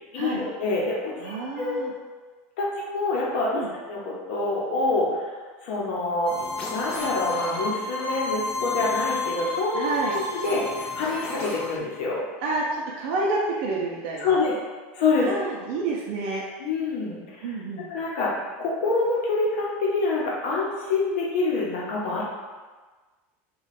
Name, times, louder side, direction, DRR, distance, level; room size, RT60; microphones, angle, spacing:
voice 1, 0.1-1.9 2.6-5.3 5.6-12.3 14.2-14.5 14.9-15.3 16.6-17.5 17.9-22.2, left 3 dB, 60° left, -4 dB, 1.0 m, -26 dB
voice 2, 1.2-1.9 3.5-3.7 9.7-10.1 12.4-14.4 15.2-16.4 17.4-17.9, right 3 dB, 55° right, -4 dB, 0.5 m, -29 dB
sound 1, 6.3-11.8, left 3 dB, 20° left, 0.5 m, -31 dB
3.0 x 2.4 x 4.2 m, 1.3 s
supercardioid pair, 170°, 7 cm